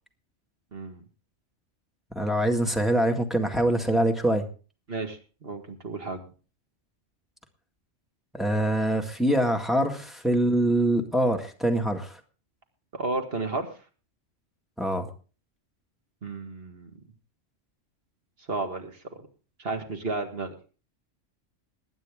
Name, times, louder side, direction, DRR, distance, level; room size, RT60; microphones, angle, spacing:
voice 1, 0.7-1.0 4.9-6.2 12.9-13.7 16.2-16.9 18.5-19.0 19.6-20.5, right 3 dB, 50° right, 5 dB, 2.1 m, -32 dB
voice 2, 2.2-4.4 8.3-12.2 14.8-15.1, right 1 dB, ahead, 2 dB, 1.8 m, -24 dB
21.0 x 9.1 x 3.6 m, 0.37 s
omnidirectional pair, 1.2 m